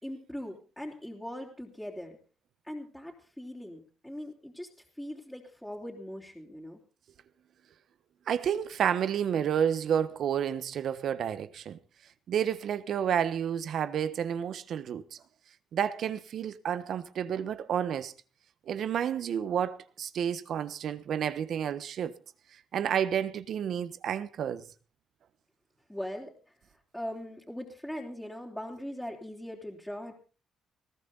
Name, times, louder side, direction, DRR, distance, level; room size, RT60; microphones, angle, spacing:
voice 1, 0.0-2.2 2.6-4.7 4.9-6.8 25.9-30.1, left 1 dB, 5° left, 3.4 m, -40 dB
voice 2, 8.3-11.8 12.3-15.2 15.7-18.1 18.7-22.1 22.7-24.6, right 8 dB, 65° right, 1.2 m, -30 dB
20.5 x 14.5 x 4.0 m
cardioid pair, 90°, 0 cm